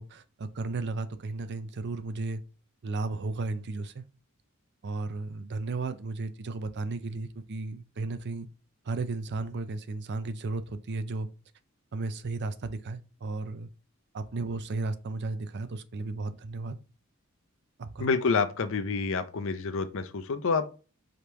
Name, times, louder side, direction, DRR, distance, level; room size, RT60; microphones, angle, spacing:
voice 1, 0.0-2.4 2.8-4.0 4.8-8.5 8.8-11.3 11.9-13.7 14.1-16.8 17.8-18.1, right 3 dB, 50° right, 0.5 m, -34 dB
voice 2, 18.0-20.7, left 4 dB, 60° left, 0.6 m, -28 dB
5.0 x 3.1 x 3.3 m
head